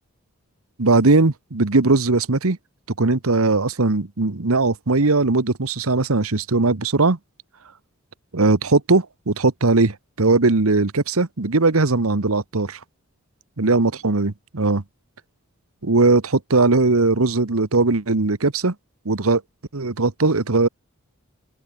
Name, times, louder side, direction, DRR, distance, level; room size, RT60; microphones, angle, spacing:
voice 1, 0.8-2.6 3.0-7.2 8.3-12.8 13.6-14.8 15.8-18.7 19.0-19.4 19.7-20.7, right 3 dB, 75° right, 1.3 m, -19 dB
open air
head